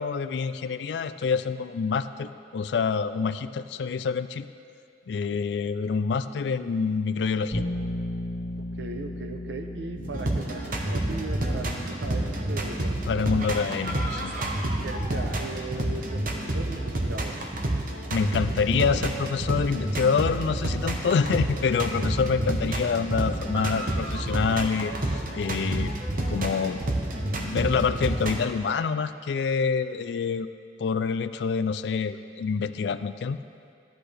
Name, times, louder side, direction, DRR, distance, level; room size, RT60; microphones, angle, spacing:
voice 1, 0.0-4.5 5.1-7.6 13.1-14.3 18.1-25.9 26.3-26.8 27.4-30.5 30.8-33.4, left 5 dB, 70° left, 11 dB, 0.3 m, -27 dB
Bass guitar, 7.5-17.3, left 1 dB, 45° left, 1.7 m, -38 dB
voice 2, 8.6-13.1 14.8-17.4, right 2 dB, 80° right, 5 dB, 0.7 m, -38 dB
sound 1, 10.0-28.4, right 1 dB, 50° right, 1.0 m, -29 dB
13.0 x 10.5 x 3.4 m, 2.3 s
head